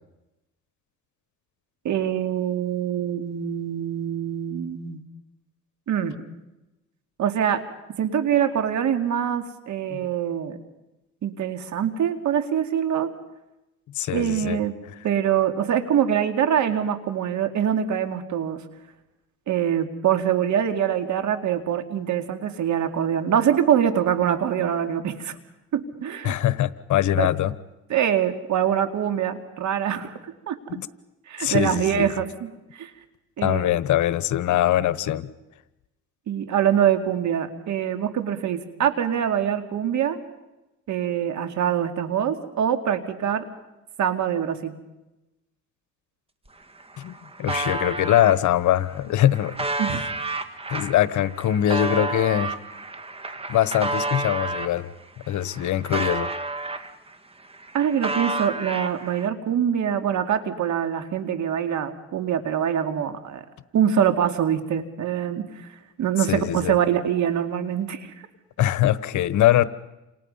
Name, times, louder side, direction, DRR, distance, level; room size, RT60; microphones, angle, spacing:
voice 1, 1.8-5.0 5.9-6.2 7.2-7.6 8.0-10.6 11.2-13.1 14.1-14.8 15.0-18.6 19.5-25.4 25.7-26.4 27.2-27.3 27.9-30.1 30.5-30.6 31.3-32.5 32.8-32.9 33.4-33.7 36.3-40.2 40.9-43.5 44.0-44.7 49.8-50.0 57.7-63.4 63.7-65.4 66.0-68.1, right 9 dB, 70° right, 8 dB, 2.5 m, -24 dB
voice 2, 13.9-14.6 26.2-27.5 30.7-30.9 31.4-32.1 33.4-35.3 47.0-49.6 50.7-52.6 53.5-54.9 55.3-56.3 66.3-66.8 68.6-69.6, left 12 dB, 75° left, 16 dB, 1.1 m, -22 dB
sound 1, 46.5-46.6 46.8-48.3 49.0-54.8 55.2-57.2 57.4-59.3, right 2 dB, 20° right, 1.9 m, -30 dB
29.0 x 27.0 x 5.6 m, 0.99 s
cardioid pair, 90°, 30 cm